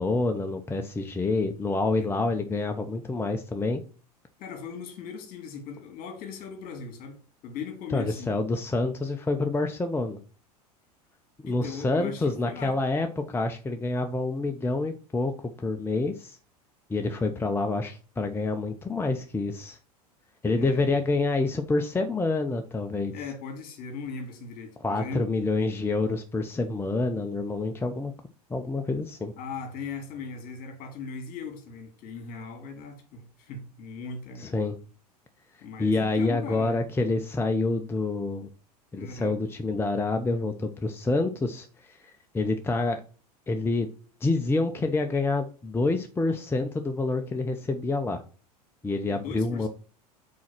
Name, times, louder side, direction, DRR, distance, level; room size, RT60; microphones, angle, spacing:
voice 1, 0.0-3.8 7.9-10.2 11.4-15.3 15.6-16.4 16.9-19.8 20.4-23.1 24.8-28.1 28.5-29.3 34.4-34.8 35.8-38.5 38.9-43.0 43.5-43.9 44.2-48.2 48.8-49.7, left 3 dB, 10° left, 0.7 m, -27 dB
voice 2, 4.4-7.2 7.4-8.4 11.4-12.8 20.5-21.0 23.1-25.3 29.4-34.6 35.6-36.8 39.0-39.4 49.1-49.7, left 5 dB, 45° left, 2.4 m, -39 dB
6.2 x 4.2 x 6.0 m
hypercardioid pair, 85°, 20 cm